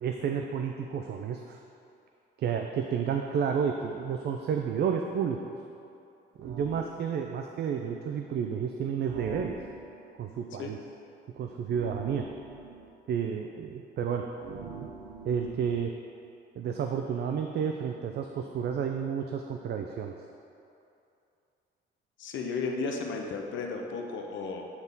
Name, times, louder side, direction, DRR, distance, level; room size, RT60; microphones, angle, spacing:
voice 1, 0.0-1.6 2.4-5.4 6.4-9.6 10.2-10.8 11.4-12.3 13.1-14.9 15.2-15.9 16.6-20.1, right 7 dB, 55° right, 3 dB, 0.4 m, -31 dB
sound 1, 6.4-6.8 9.1-10.0 11.7-12.8 14.4-15.8, right 4 dB, 80° right, 1.0 m, -43 dB
voice 2, 22.2-24.7, left 4 dB, 70° left, 2 dB, 0.7 m, -34 dB
9.4 x 3.6 x 4.0 m, 2.6 s
cardioid pair, 90°, 20 cm